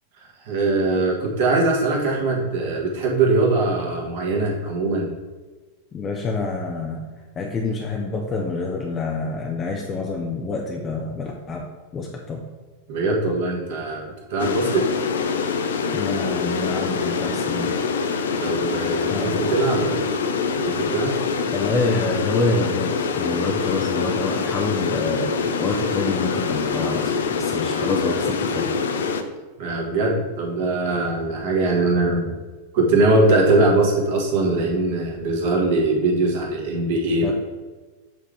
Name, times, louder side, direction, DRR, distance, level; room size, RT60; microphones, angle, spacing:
voice 1, 0.4-5.1 12.9-14.9 18.4-20.1 20.5-21.2 29.6-32.4 32.7-37.3, right 2 dB, 50° right, -2 dB, 1.6 m, -21 dB
voice 2, 5.9-7.1 7.4-11.7 11.9-12.4 15.9-17.7 19.1-19.5 21.5-28.7 37.2-37.3, left 3 dB, 25° left, 0 dB, 0.7 m, -27 dB
sound 1, 14.4-29.2, left 5 dB, 65° left, 0.5 m, -25 dB
7.8 x 3.6 x 3.5 m, 1.3 s
figure-of-eight pair, 90°, 0 cm